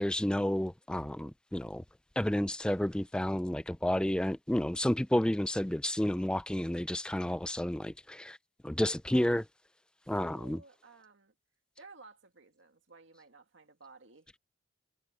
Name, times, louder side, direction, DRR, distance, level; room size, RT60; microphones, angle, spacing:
voice 1, 0.0-1.8 2.2-8.4 8.6-9.5 10.1-10.6, left 1 dB, 5° left, 0.3 m, -31 dB
voice 2, 10.2-11.3 11.8-14.4, right 3 dB, 80° right, 2.2 m, -56 dB
head